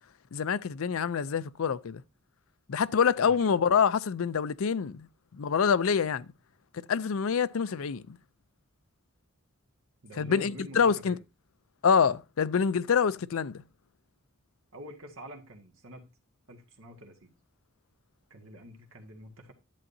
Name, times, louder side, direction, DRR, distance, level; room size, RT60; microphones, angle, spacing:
voice 1, 0.3-2.0 2.7-5.1 5.3-6.3 6.9-8.2 10.2-11.2 11.8-13.6, left 6 dB, 80° left, 0.5 m, -26 dB
voice 2, 10.0-11.2 14.7-16.1 16.5-17.3 18.3-19.5, equal, 75° right, 1.8 m, -47 dB
10.5 x 8.7 x 2.7 m
head